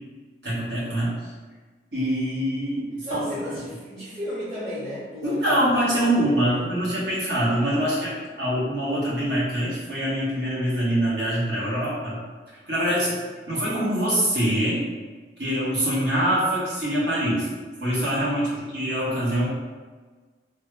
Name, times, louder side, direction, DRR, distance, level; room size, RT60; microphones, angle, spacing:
voice 1, 0.4-1.1 1.9-3.4 5.2-12.2 12.6-13.1 13.5-14.8 15.4-17.5 17.8-19.5, equal, 75° right, -8 dB, 1.3 m, -24 dB
voice 2, 3.0-5.6 5.9-6.8 12.9-13.1 18.4-18.6, left 1 dB, 25° right, -13 dB, 0.8 m, -35 dB
3.2 x 2.1 x 3.2 m, 1.4 s
head